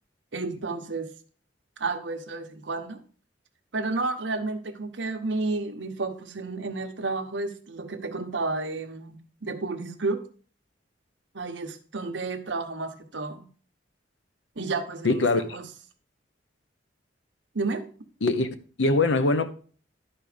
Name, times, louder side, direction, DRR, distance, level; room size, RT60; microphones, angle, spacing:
voice 1, 0.3-1.1 1.8-3.0 3.7-10.2 11.3-13.4 14.6-15.7 17.5-17.8, right 3 dB, 70° right, 1.0 m, -31 dB
voice 2, 15.0-15.4 18.2-18.5 18.8-19.5, left 2 dB, 80° left, 0.9 m, -22 dB
11.5 x 4.5 x 5.0 m
head